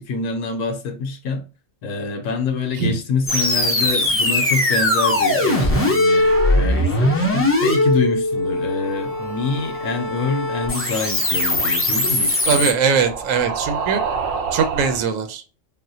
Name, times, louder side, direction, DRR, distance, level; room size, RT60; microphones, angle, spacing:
voice 1, 0.0-1.4 1.8-6.3 6.6-12.7, left 4 dB, 80° left, 1.0 m, -26 dB
sound 1, 3.3-12.7, left 1 dB, 15° left, 0.4 m, -20 dB
sound 2, 8.3-15.0, right 5 dB, 60° right, 0.7 m, -31 dB
voice 2, 12.5-14.0 14.5-15.4, right 6 dB, 85° right, 1.0 m, -20 dB
4.1 x 2.1 x 2.6 m
omnidirectional pair, 1.3 m